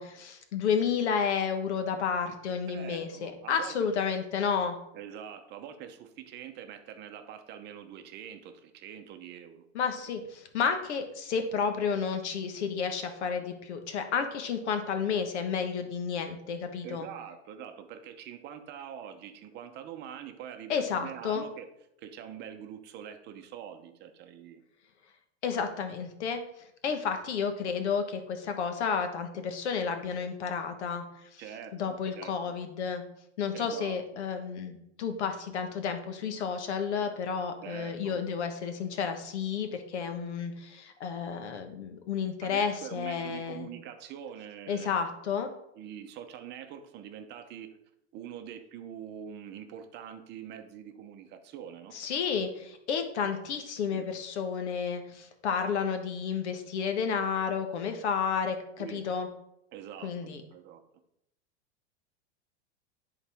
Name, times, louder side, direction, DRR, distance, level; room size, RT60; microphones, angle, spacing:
voice 1, 0.0-4.8 9.7-17.1 20.7-21.4 25.4-26.4 26.8-31.0 31.3-31.4 31.7-33.0 33.4-43.7 44.7-45.5 51.9-59.3 60.0-60.4, left 6 dB, 85° left, 7 dB, 1.2 m, -31 dB
voice 2, 2.7-3.8 4.9-9.7 16.8-21.7 22.0-24.6 26.9-27.0 31.4-32.5 33.5-34.2 37.6-38.2 42.4-44.9 45.7-47.8 48.1-52.0 53.9-54.1 58.8-59.0 59.7-60.8, right 9 dB, 30° right, 7 dB, 0.7 m, -44 dB
10.0 x 4.1 x 3.5 m, 0.80 s
supercardioid pair, 140°, 34 cm